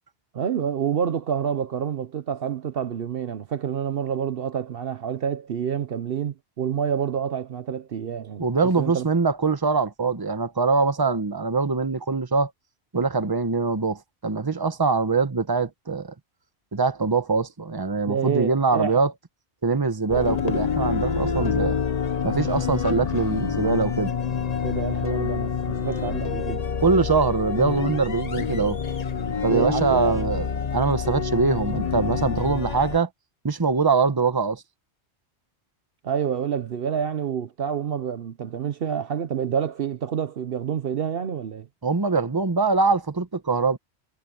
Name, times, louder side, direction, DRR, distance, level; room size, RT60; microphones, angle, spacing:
voice 1, 0.3-8.5 8.8-9.1 18.1-19.0 24.6-26.6 29.5-30.3 36.0-41.7, right 8 dB, 60° right, 0.9 m, -28 dB
voice 2, 8.4-12.5 12.9-16.1 16.7-19.1 19.6-21.8 22.2-24.1 26.8-28.8 29.4-30.5 30.7-33.1 33.4-34.6 41.8-43.8, right 4 dB, 20° right, 1.0 m, -23 dB
sound 1, 20.1-33.0, left 6 dB, 40° left, 0.9 m, -27 dB
omnidirectional pair, 1.1 m